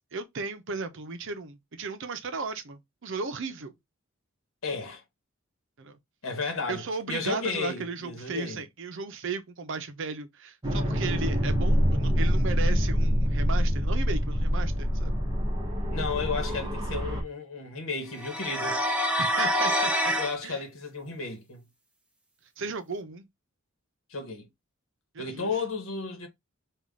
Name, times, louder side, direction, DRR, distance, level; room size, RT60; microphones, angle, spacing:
voice 1, 0.1-3.7 5.8-6.0 6.7-15.1 19.2-20.1 20.4-20.6 22.6-23.3 25.1-25.5, right 4 dB, 65° right, 0.7 m, -35 dB
voice 2, 4.6-5.0 6.2-8.6 15.9-18.8 20.2-21.6 24.1-24.5 25.2-26.3, left 4 dB, 70° left, 1.1 m, -33 dB
sound 1, 10.6-17.2, equal, 20° right, 1.1 m, -26 dB
sound 2, 18.2-20.3, equal, 5° right, 0.7 m, -26 dB
3.6 x 2.4 x 3.6 m
head